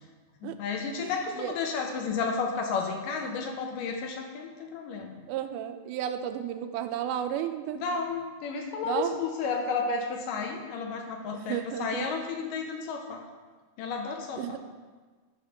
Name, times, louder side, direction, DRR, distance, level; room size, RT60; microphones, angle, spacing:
voice 1, 0.4-5.2 7.8-13.2 13.8-14.6, left 4 dB, 75° left, 3 dB, 2.2 m, -32 dB
voice 2, 5.3-7.8 8.8-9.2 11.3-12.1 14.4-14.6, right 10 dB, 85° right, 8 dB, 2.5 m, -33 dB
12.0 x 5.1 x 5.7 m, 1.4 s
omnidirectional pair, 4.3 m